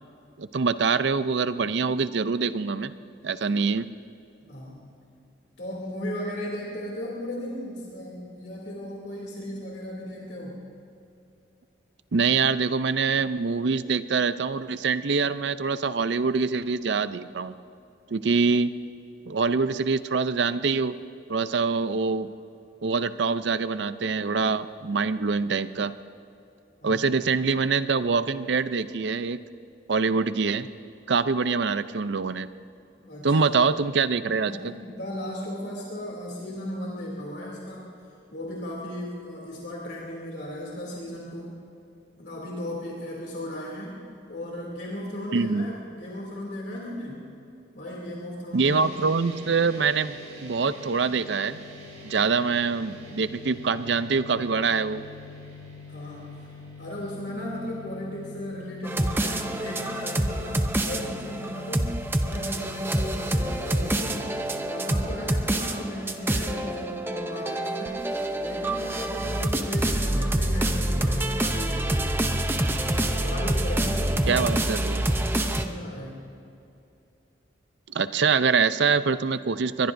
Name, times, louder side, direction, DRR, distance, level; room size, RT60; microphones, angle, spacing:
voice 1, 0.4-2.9 3.2-3.9 12.1-17.5 18.1-18.7 19.3-20.9 21.3-22.3 22.8-25.9 26.8-29.4 29.9-30.7 31.1-32.5 33.2-34.7 45.3-45.7 48.5-51.6 52.0-55.0 74.3-75.0 77.9-79.9, right 4 dB, 70° right, 13 dB, 0.5 m, -24 dB
voice 2, 4.4-4.9 5.6-10.6 26.8-27.0 33.0-33.4 34.4-37.8 38.3-41.5 42.2-44.0 44.3-47.2 47.7-49.0 55.9-61.9 62.2-64.2 64.6-68.0 68.3-72.4 73.2-74.6 75.0-76.2, left 1 dB, 65° left, -4 dB, 2.8 m, -36 dB
sound 1, 48.7-64.6, left 3 dB, 40° right, 3.0 m, -45 dB
sound 2, 58.8-75.7, right 1 dB, 10° right, 0.6 m, -27 dB
22.0 x 21.5 x 2.7 m, 2.7 s
head